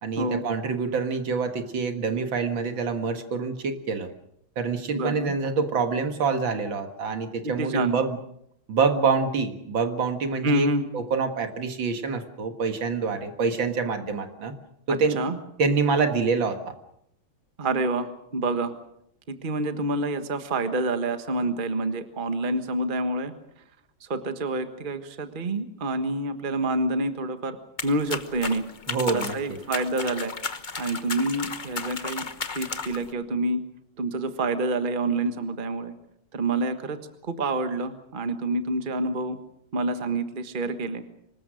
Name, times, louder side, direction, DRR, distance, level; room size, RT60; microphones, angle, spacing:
voice 1, 0.0-4.1 4.6-8.2 8.7-14.5 14.9-15.3 15.6-16.7 28.9-29.6, right 4 dB, 70° right, 7 dB, 2.4 m, -26 dB
voice 2, 4.9-5.3 7.4-8.0 10.4-10.8 14.9-15.4 17.6-18.7 19.3-23.3 24.0-27.6 27.8-28.6 29.1-30.3 30.8-32.2 32.5-33.6 34.0-35.9 36.3-39.4 39.7-41.0, right 2 dB, 25° right, 8 dB, 1.4 m, -27 dB
sound 1, 27.8-33.1, left 4 dB, 30° left, 0.9 m, -34 dB
25.0 x 20.0 x 6.4 m, 0.74 s
omnidirectional pair, 2.2 m